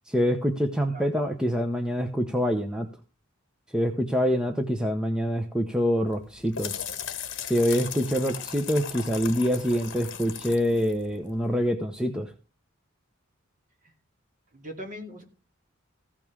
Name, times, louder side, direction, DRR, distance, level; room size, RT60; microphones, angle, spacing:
voice 1, 0.1-2.9 3.7-6.7 7.5-12.3, equal, 5° right, 4 dB, 0.8 m, -25 dB
voice 2, 0.9-1.2 13.8-13.9 14.5-15.2, equal, 40° right, 2 dB, 2.5 m, -40 dB
sound 1, 6.1-11.6, left 8 dB, 60° left, 1.2 m, -38 dB
15.0 x 5.4 x 6.2 m, 0.34 s
head